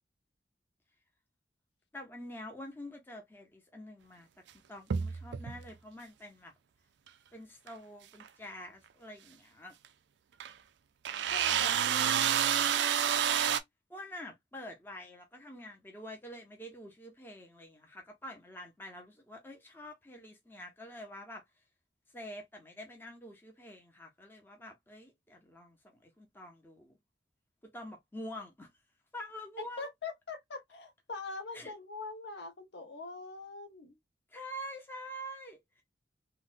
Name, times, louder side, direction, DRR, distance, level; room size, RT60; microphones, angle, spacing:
voice 1, 1.9-4.3 4.7-6.5 7.3-9.7 13.9-21.4 22.1-27.0 27.7-28.7 29.1-29.9 31.5-31.7 34.3-35.8, equal, 10° left, 0.6 m, -47 dB
sound 1, 4.9-5.7 7.7-7.8 8.2-8.3 9.8-9.9 10.4-10.5 11.0-13.6, right 9 dB, 70° right, 0.4 m, -29 dB
voice 2, 11.3-12.2 29.8-33.9, left 3 dB, 65° left, 0.8 m, -43 dB
3.8 x 2.1 x 2.4 m
head